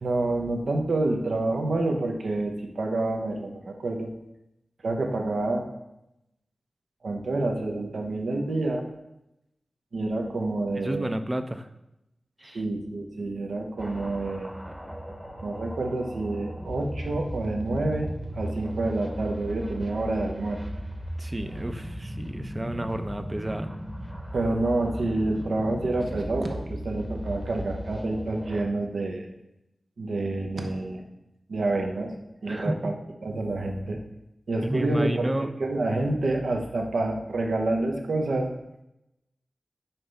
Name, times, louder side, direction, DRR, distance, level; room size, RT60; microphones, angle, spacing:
voice 1, 0.0-4.1 4.8-5.6 7.0-8.8 9.9-11.2 12.5-14.5 15.4-18.1 18.3-20.6 24.3-29.3 30.0-31.0 31.5-32.1 32.4-32.9 33.2-34.0 34.5-38.5, right 2 dB, 80° right, 2 dB, 0.9 m, -28 dB
voice 2, 10.8-11.7 12.4-12.6 21.2-23.7 32.5-32.9 34.6-35.5, right 1 dB, 25° right, 9 dB, 0.5 m, -31 dB
sound 1, 13.8-28.7, equal, 5° right, 0.9 m, -36 dB
5.7 x 3.4 x 5.4 m, 0.88 s
cardioid pair, 45°, 0 cm